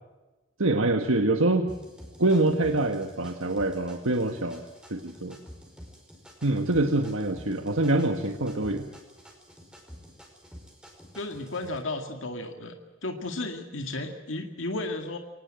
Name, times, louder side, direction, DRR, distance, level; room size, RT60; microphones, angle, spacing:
voice 1, 0.6-1.7 2.2-4.6 4.9-5.3 6.4-8.9, right 2 dB, 80° right, 5 dB, 1.6 m, -25 dB
sound 1, 1.7-11.8, equal, 5° right, 5.1 m, -49 dB
voice 2, 11.2-12.7 13.0-15.2, left 2 dB, 65° left, 5 dB, 2.1 m, -33 dB
24.5 x 19.0 x 7.7 m, 1.2 s
head